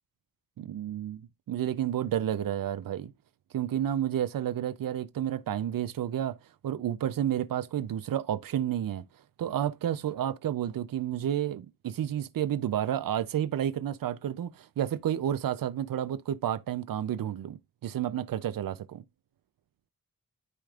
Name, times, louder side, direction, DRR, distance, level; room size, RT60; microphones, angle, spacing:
voice 1, 0.6-3.1 3.5-9.1 9.4-19.0, right 10 dB, 85° right, 0.6 m, -31 dB
12.5 x 4.9 x 2.4 m
wide cardioid pair, 160°, 33 cm